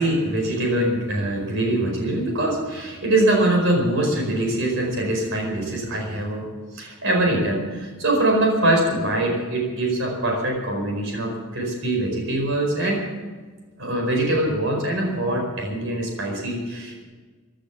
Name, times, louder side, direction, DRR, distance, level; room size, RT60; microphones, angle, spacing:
voice 1, 0.0-6.5 6.7-13.0 13.8-17.0, right 1 dB, 60° right, 1 dB, 4.9 m, -23 dB
15.5 x 11.5 x 7.2 m, 1.4 s
head